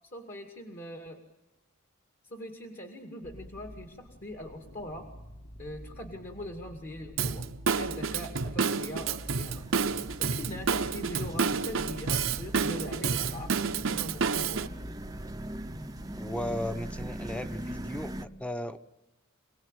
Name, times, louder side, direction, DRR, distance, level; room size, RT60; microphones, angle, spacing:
voice 1, 0.1-1.2 2.3-5.1 5.6-7.5 7.8-9.7 10.2-14.7, left 1 dB, 40° left, 4 dB, 2.3 m, -41 dB
sound 1, 3.2-18.2, equal, 55° left, 1.6 m, -48 dB
Drum kit / Drum, 7.2-14.7, right 5 dB, 70° right, 0.9 m, -30 dB
sound 2, 9.5-18.3, right 1 dB, 20° right, 0.8 m, -41 dB
voice 2, 16.2-18.8, left 1 dB, 5° left, 10 dB, 1.0 m, -36 dB
27.0 x 18.0 x 9.1 m, 1.0 s
head